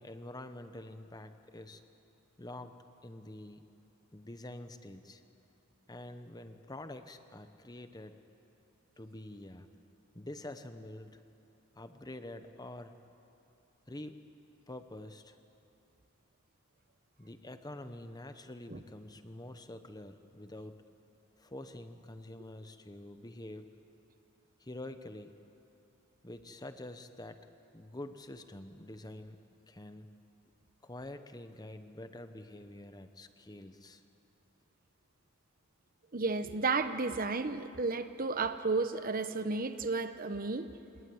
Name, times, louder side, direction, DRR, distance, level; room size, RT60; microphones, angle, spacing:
voice 1, 0.0-1.8 2.4-2.7 3.0-3.6 4.1-5.2 5.9-8.2 9.0-9.7 10.1-11.2 11.7-12.9 13.9-14.2 14.7-15.4 17.2-20.8 21.4-23.7 24.6-25.3 26.2-27.4 27.7-29.4 29.7-30.1 30.8-34.0, left 1 dB, 15° left, 9 dB, 1.0 m, -46 dB
voice 2, 36.1-40.7, right 3 dB, 40° right, 10 dB, 1.0 m, -32 dB
28.0 x 21.0 x 9.6 m, 2.7 s
head